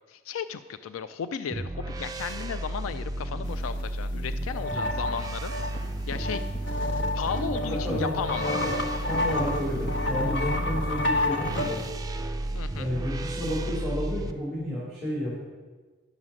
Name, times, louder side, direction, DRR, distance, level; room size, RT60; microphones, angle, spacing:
voice 1, 0.1-5.8 6.1-6.4 7.1-8.5 12.5-12.9, left 7 dB, 90° left, 12 dB, 0.4 m, -35 dB
sound 1, 1.5-14.3, right 1 dB, 20° right, 0.5 m, -33 dB
sound 2, 4.0-4.1 4.3-11.9, left 2 dB, 60° left, 1.0 m, -30 dB
voice 2, 7.6-8.2 8.5-8.7 9.1-11.8 12.8-15.4, equal, 5° left, -7 dB, 3.2 m, -31 dB
11.0 x 7.2 x 6.3 m, 1.3 s
head